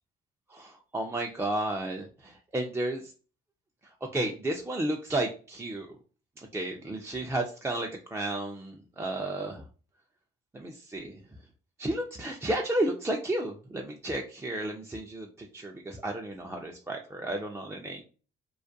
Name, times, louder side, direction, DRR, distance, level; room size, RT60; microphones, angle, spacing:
voice 1, 0.5-3.1 4.1-6.0 6.4-9.6 10.5-11.2 11.8-18.0, right 1 dB, 15° right, 1 dB, 0.3 m, -32 dB
2.3 x 2.1 x 2.6 m, 0.37 s
cardioid pair, 90°, 20 cm